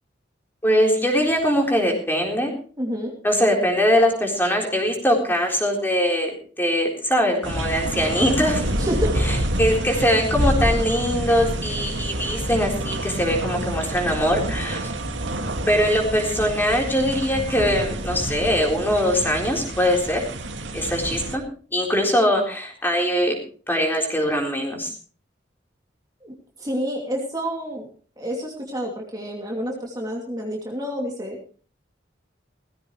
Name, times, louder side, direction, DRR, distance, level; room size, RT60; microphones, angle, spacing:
voice 1, 0.6-2.5 3.2-8.7 9.2-14.9 15.7-20.2 20.7-21.4 21.7-23.3 23.7-24.9, equal, 10° left, 0 dB, 3.9 m, -22 dB
voice 2, 2.8-3.1 8.8-9.3 9.9-10.0 26.2-27.9 28.2-31.4, equal, 20° right, 0 dB, 2.6 m, -29 dB
sound 1, 7.4-21.4, right 1 dB, 85° right, 2.1 m, -27 dB
18.0 x 15.5 x 3.2 m, 0.41 s
head